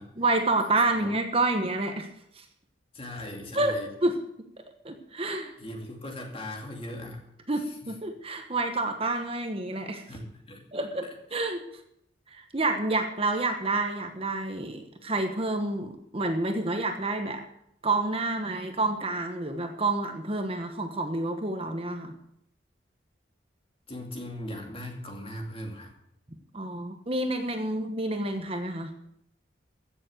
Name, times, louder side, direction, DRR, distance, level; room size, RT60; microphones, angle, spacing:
voice 1, 0.2-2.1 2.3-2.4 3.5-4.2 4.6-5.5 7.5-10.0 10.7-11.6 12.3-17.4 17.8-22.2 26.5-28.9, right 2 dB, 30° right, 5 dB, 1.2 m, -29 dB
voice 2, 2.9-3.9 5.6-7.3 7.5-7.9 10.1-10.6 11.3-11.4 23.9-25.9, left 1 dB, 30° left, 2 dB, 2.6 m, -39 dB
15.5 x 7.2 x 8.0 m, 0.74 s
head